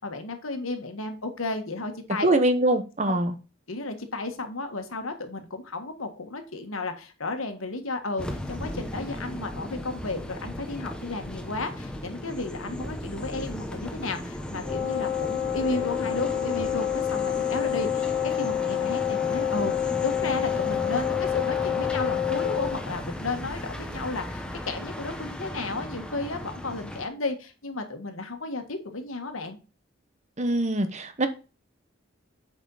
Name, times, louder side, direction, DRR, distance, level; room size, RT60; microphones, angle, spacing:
voice 1, 0.0-2.3 3.1-3.2 3.7-29.6, left 3 dB, 85° left, 1.6 m, -33 dB
voice 2, 2.2-3.3 30.4-31.3, right 1 dB, 35° right, 1.0 m, -23 dB
sound 1, 8.2-27.1, left 1 dB, 5° left, 1.0 m, -36 dB
Wind instrument woodwind instrument, 14.6-22.8, left 11 dB, 15° right, 2.4 m, -28 dB
8.4 x 5.5 x 4.0 m
head